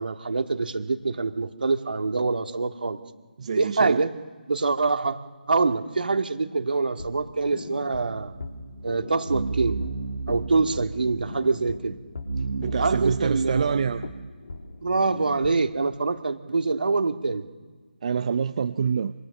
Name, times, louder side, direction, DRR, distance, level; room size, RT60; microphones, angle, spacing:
voice 1, 0.0-3.0 3.6-4.2 4.5-5.2 5.5-8.3 8.8-9.8 10.3-12.0 12.8-13.8 14.8-17.4, right 3 dB, 65° right, 6 dB, 1.9 m, -25 dB
voice 2, 3.4-4.0 12.6-14.1 18.0-19.1, right 6 dB, 40° right, 10 dB, 0.6 m, -26 dB
sound 1, 6.9-15.9, left 3 dB, 60° left, 2.4 m, -41 dB
sound 2, 8.1-14.3, right 4 dB, 85° right, 1.3 m, -33 dB
26.5 x 25.0 x 6.6 m, 1.5 s
figure-of-eight pair, 155°, 5 cm